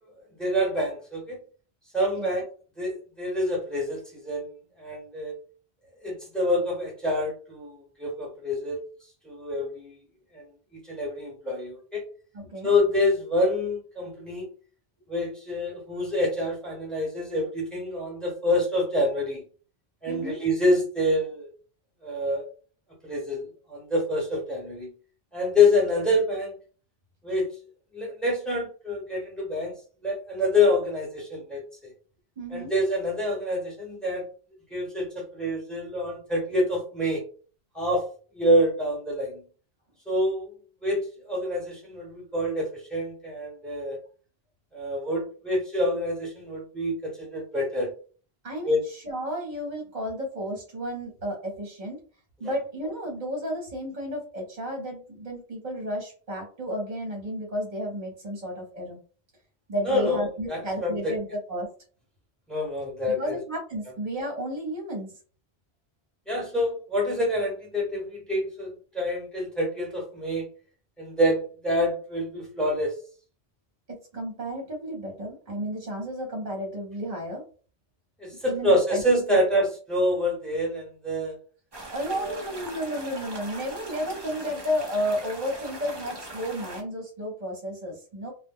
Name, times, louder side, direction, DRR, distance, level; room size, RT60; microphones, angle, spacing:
voice 1, 0.4-1.4 1.9-2.4 2.8-4.5 4.8-5.3 6.0-8.8 9.2-10.0 10.3-10.4 10.7-12.0 12.6-14.5 15.1-19.4 20.0-21.5 22.0-22.4 23.0-24.9 25.3-26.5 27.2-27.5 27.9-29.7 30.0-31.9 32.5-34.3 34.7-37.2 37.7-38.0 38.3-39.4 40.1-40.5 40.8-41.0 41.3-44.0 44.7-47.9 48.6-48.8 52.4-52.5 59.8-61.1 62.5-63.4 66.3-70.4 71.0-72.9 78.2-81.3 82.1-82.4, left 1 dB, ahead, -2 dB, 1.0 m, -26 dB
voice 2, 12.3-12.7 20.1-20.4 32.4-32.7 48.4-52.0 52.4-59.0 59.7-61.7 63.1-65.1 73.9-77.4 78.4-79.0 79.3-79.6 81.9-88.3, equal, 45° right, 0 dB, 0.9 m, -32 dB
sound 1, 81.7-86.8, right 1 dB, 30° right, 0.5 m, -41 dB
2.2 x 2.1 x 3.5 m, 0.39 s
omnidirectional pair, 1.1 m